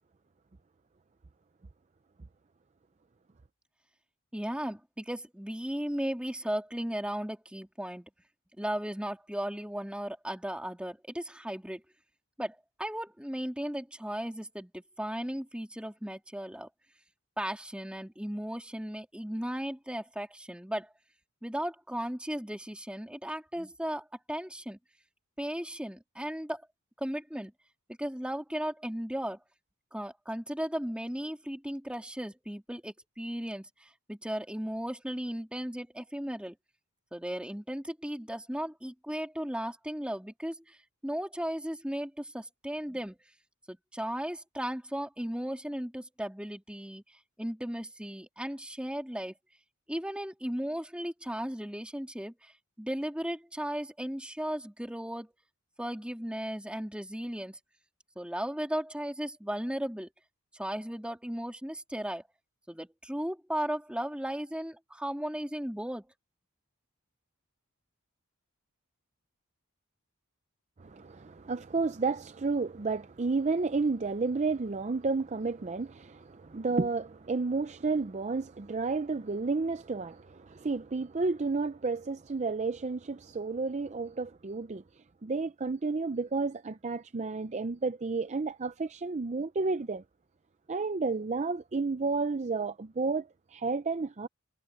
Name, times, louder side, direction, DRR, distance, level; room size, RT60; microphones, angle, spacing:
voice 1, 4.3-8.1 8.6-11.8 12.4-16.7 17.4-20.9 21.4-24.8 25.4-26.6 27.0-27.5 28.0-29.4 29.9-36.5 37.1-40.8 41.0-43.2 43.7-49.3 49.9-52.5 52.8-55.3 55.8-57.6 58.2-60.1 60.5-62.2 62.7-66.1, equal, 5° right, 2.9 m, -36 dB
voice 2, 70.8-84.8 85.2-90.0 90.7-94.3, right 4 dB, 30° right, 0.5 m, -31 dB
head